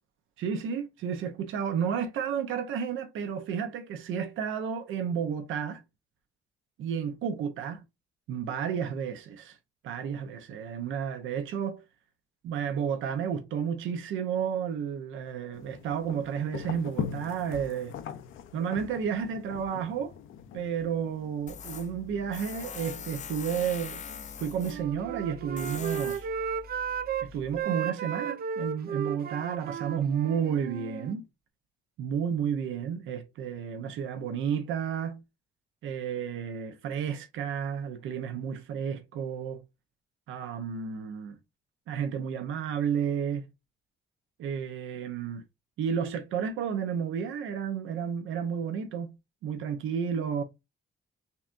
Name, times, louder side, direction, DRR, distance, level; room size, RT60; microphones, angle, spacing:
voice 1, 0.4-5.8 6.8-7.8 8.3-9.6 9.8-11.8 12.4-17.9 18.5-20.2 20.5-26.3 27.2-31.3 32.0-35.2 35.8-39.6 40.3-41.4 41.9-43.5 44.4-45.4 45.8-49.2 49.4-50.4, right 7 dB, 80° right, 0.8 m, -32 dB
sound 1, 15.5-22.7, left 8 dB, 80° left, 0.6 m, -41 dB
Tools, 21.5-27.6, left 7 dB, 35° left, 0.4 m, -43 dB
Wind instrument woodwind instrument, 24.5-27.3 27.5-31.2, right 7 dB, 50° right, 0.4 m, -34 dB
5.6 x 2.3 x 2.5 m
cardioid pair, 90°, 20 cm